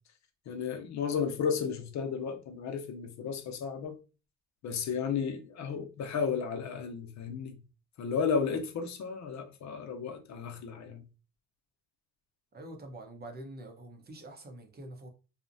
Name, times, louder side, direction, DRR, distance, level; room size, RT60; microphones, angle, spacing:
voice 1, 0.5-4.0 4.6-7.6 8.0-11.0, left 6 dB, 65° left, 0.6 m, -33 dB
voice 2, 12.5-15.1, right 1 dB, 30° right, 0.7 m, -46 dB
2.8 x 2.0 x 2.5 m
cardioid pair, 90°, 30 cm